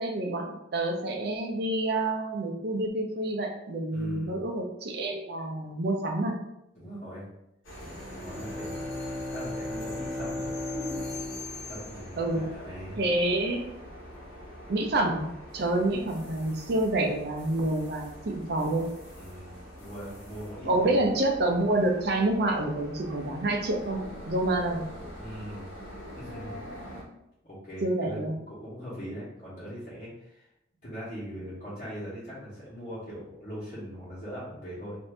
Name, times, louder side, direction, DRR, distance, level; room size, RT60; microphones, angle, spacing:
voice 1, 0.0-6.4 12.2-12.5 13.0-13.7 14.7-15.3 15.5-18.9 20.6-24.9 27.8-28.3, right 2 dB, 55° right, 2 dB, 0.5 m, -28 dB
voice 2, 3.9-4.4 6.7-7.2 7.8-8.9 9.3-11.0 11.6-13.0 19.2-19.5 19.8-21.0 25.2-25.7 26.1-26.7 27.4-30.5 30.8-35.0, equal, 40° left, -11 dB, 1.1 m, -41 dB
sound 1, 7.6-27.0, left 1 dB, 85° left, 1.1 m, -44 dB
Bowed string instrument, 7.8-12.6, left 1 dB, ahead, 0.6 m, -37 dB
2.6 x 2.6 x 3.2 m, 0.84 s
head